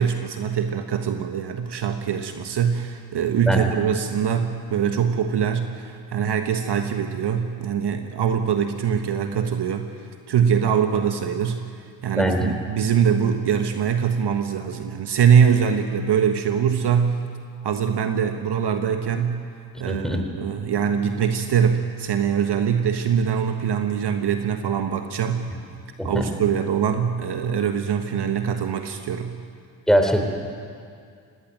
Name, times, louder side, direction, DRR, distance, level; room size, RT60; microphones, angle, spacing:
voice 1, 0.0-9.9 10.3-11.6 12.0-17.2 17.6-19.4 19.8-25.5 26.0-29.4, right 7 dB, 55° right, 6 dB, 1.5 m, -23 dB
voice 2, 12.2-12.5 19.9-20.2 26.0-26.3 29.9-30.3, equal, ahead, 5 dB, 3.8 m, -21 dB
18.5 x 18.5 x 9.2 m, 2.2 s
supercardioid pair, 55°, 48 cm